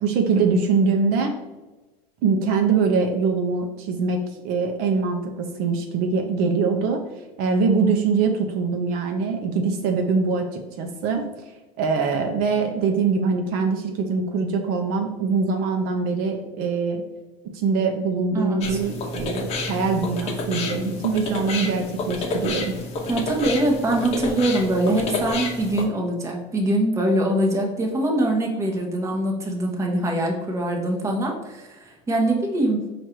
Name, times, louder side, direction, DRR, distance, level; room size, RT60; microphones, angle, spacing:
voice 1, 0.0-1.4 2.2-7.0 7.4-11.3 11.8-17.0 17.5-22.7, right 4 dB, 60° right, 4 dB, 0.6 m, -23 dB
voice 2, 18.3-18.8 23.1-32.8, right 1 dB, 15° right, 0 dB, 0.9 m, -23 dB
sound 1, 18.6-25.8, left 3 dB, 40° left, 0.8 m, -30 dB
4.7 x 2.5 x 4.4 m, 1.1 s
supercardioid pair, 135°, 17 cm